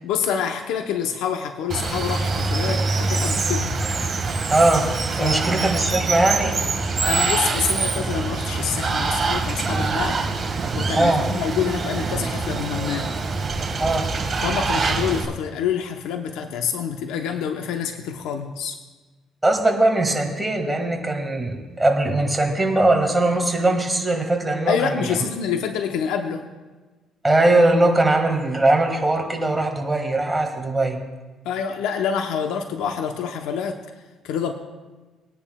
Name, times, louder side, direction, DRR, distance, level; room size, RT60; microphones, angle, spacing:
voice 1, 0.0-3.8 5.2-5.5 7.0-10.3 10.7-13.2 14.4-18.8 24.7-26.4 31.4-33.8 34.2-34.5, left 7 dB, 90° left, 6 dB, 0.7 m, -27 dB
Water, 1.7-15.2, right 4 dB, 30° right, 1.6 m, -24 dB
voice 2, 4.5-6.6 11.0-11.3 13.8-14.1 19.4-25.2 27.2-31.0, right 2 dB, 10° right, 2 dB, 1.7 m, -20 dB
21.0 x 10.0 x 2.3 m, 1.2 s
cardioid pair, 120°, 0 cm